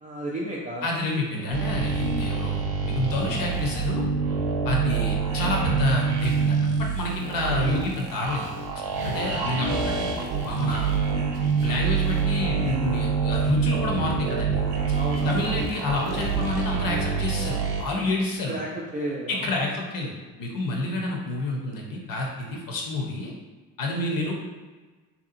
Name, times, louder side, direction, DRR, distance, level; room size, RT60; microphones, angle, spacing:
voice 1, 0.0-0.9 14.9-15.6 18.5-19.5 24.2-24.3, right 1 dB, 15° right, -5 dB, 0.3 m, -32 dB
voice 2, 0.8-4.0 4.6-8.5 9.0-10.9 11.6-14.7 15.2-18.6 19.3-20.1 20.4-23.3 23.8-24.3, left 2 dB, 45° left, 0 dB, 0.8 m, -28 dB
sound 1, 1.5-17.8, right 5 dB, 50° right, 0.7 m, -26 dB
2.8 x 2.3 x 2.6 m, 1.3 s
figure-of-eight pair, 55°, 49 cm